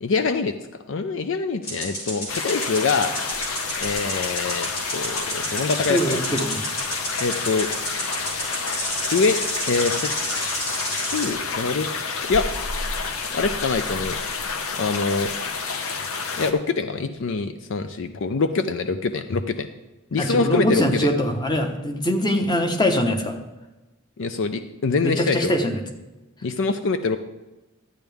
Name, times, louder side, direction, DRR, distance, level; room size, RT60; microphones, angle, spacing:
voice 1, 0.0-0.5 0.9-3.1 3.8-6.2 7.2-7.7 9.1-9.4 9.7-10.1 11.1-11.9 12.3-12.5 13.3-14.2 14.8-15.3 16.4-19.7 20.1-21.1 24.2-25.5 26.4-27.2, left 4 dB, 65° left, 10 dB, 0.5 m, -24 dB
sound 1, 1.6-11.3, equal, 50° left, 3.4 m, -31 dB
sound 2, 2.3-16.5, left 4 dB, 90° left, 0.9 m, -29 dB
voice 2, 5.8-6.6 20.2-23.4 24.9-25.8, equal, 20° left, 5 dB, 1.0 m, -23 dB
12.5 x 9.1 x 3.5 m, 1.1 s
head